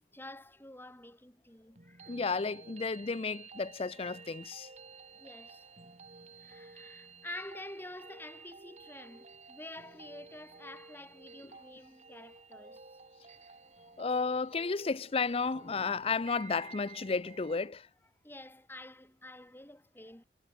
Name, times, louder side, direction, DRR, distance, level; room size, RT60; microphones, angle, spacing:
voice 1, 0.0-2.2 5.2-5.7 6.4-12.8 18.2-20.2, left 1 dB, 10° left, 7.8 m, -48 dB
sound 1, 1.8-17.7, right 5 dB, 40° right, 2.4 m, -53 dB
voice 2, 2.1-4.7 14.0-17.8, left 4 dB, 35° left, 0.5 m, -32 dB
head